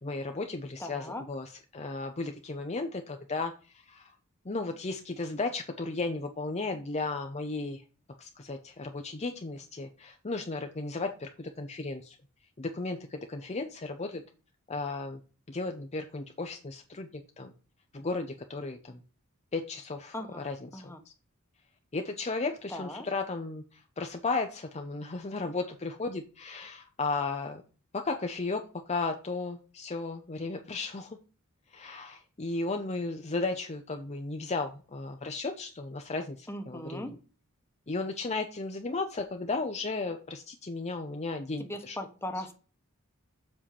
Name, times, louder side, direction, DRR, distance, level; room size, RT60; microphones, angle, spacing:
voice 1, 0.0-4.1 4.4-7.8 8.2-12.2 12.6-14.2 14.7-15.2 15.5-17.5 17.9-19.0 19.5-20.9 21.9-27.6 28.0-28.6 28.9-31.2 31.7-37.2 37.9-42.0 42.4-42.5, left 3 dB, 30° left, 5 dB, 0.7 m, -35 dB
voice 2, 0.8-1.2 20.1-20.4 20.7-21.0 22.7-23.1 36.5-37.1 41.6-42.5, left 1 dB, 10° left, 6 dB, 1.2 m, -38 dB
7.5 x 4.5 x 6.9 m, 0.36 s
head